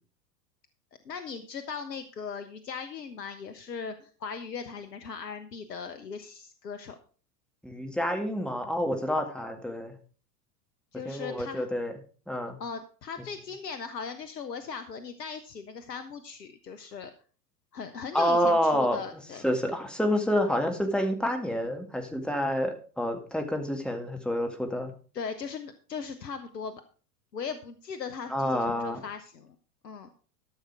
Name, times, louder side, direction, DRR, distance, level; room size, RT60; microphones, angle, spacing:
voice 1, 1.0-7.0 10.9-11.6 12.6-17.1 17.7-19.4 25.1-26.8 27.3-29.5 29.8-30.1, left 5 dB, 80° left, 9 dB, 1.1 m, -38 dB
voice 2, 7.6-9.9 11.1-11.9 12.3-12.6 18.1-24.9 28.3-29.0, equal, ahead, 3 dB, 2.0 m, -28 dB
13.5 x 6.5 x 4.7 m, 0.39 s
hypercardioid pair, 90°, 48 cm